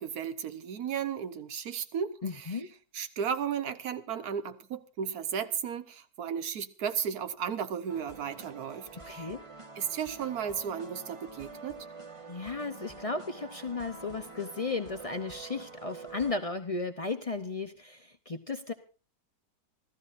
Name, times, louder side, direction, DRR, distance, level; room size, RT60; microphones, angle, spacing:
voice 1, 0.0-2.6 2.9-9.3 9.8-11.8, right 7 dB, 65° right, 1.4 m, -34 dB
voice 2, 2.2-2.7 9.0-9.4 12.3-18.7, left 3 dB, 60° left, 0.3 m, -35 dB
sound 1, 7.9-16.4, right 3 dB, 20° right, 1.3 m, -47 dB
26.0 x 15.0 x 2.6 m
omnidirectional pair, 1.8 m